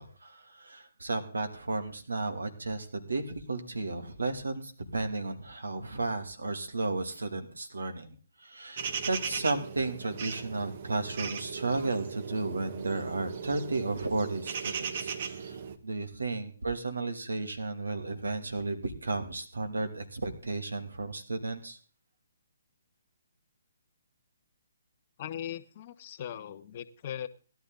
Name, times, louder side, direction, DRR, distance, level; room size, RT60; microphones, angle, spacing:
voice 1, 0.0-21.8, right 3 dB, 90° right, 6 dB, 2.6 m, -34 dB
sound 1, 8.8-15.8, right 6 dB, 50° right, 1.5 m, -38 dB
voice 2, 25.2-27.3, left 10 dB, 40° left, 10 dB, 1.0 m, -39 dB
17.0 x 11.5 x 3.9 m, 0.41 s
hypercardioid pair, 140°, 0 cm